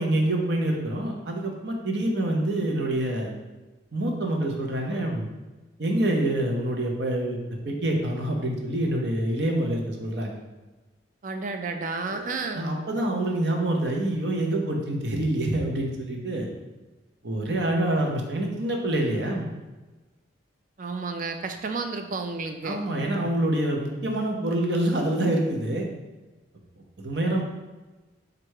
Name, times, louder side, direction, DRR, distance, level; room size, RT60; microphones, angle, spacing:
voice 1, 0.0-3.3 3.9-5.3 5.8-7.4 7.6-10.4 12.1-12.3 12.5-16.5 17.2-19.5 22.6-25.9 27.0-27.4, right 1 dB, 65° right, 1 dB, 0.8 m, -26 dB
voice 2, 11.2-12.7 20.8-22.8, right 4 dB, 45° right, 6 dB, 0.4 m, -31 dB
4.4 x 2.5 x 4.7 m, 1.2 s
head